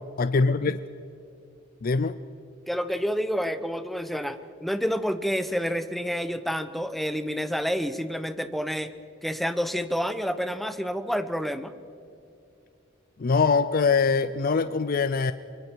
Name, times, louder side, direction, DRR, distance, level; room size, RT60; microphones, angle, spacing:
voice 1, 0.2-0.8 1.8-2.1 13.2-15.3, left 4 dB, 45° left, 13 dB, 0.5 m, -23 dB
voice 2, 2.7-8.9 9.2-11.7, equal, ahead, 11 dB, 0.8 m, -29 dB
24.0 x 23.5 x 4.6 m, 2.7 s
head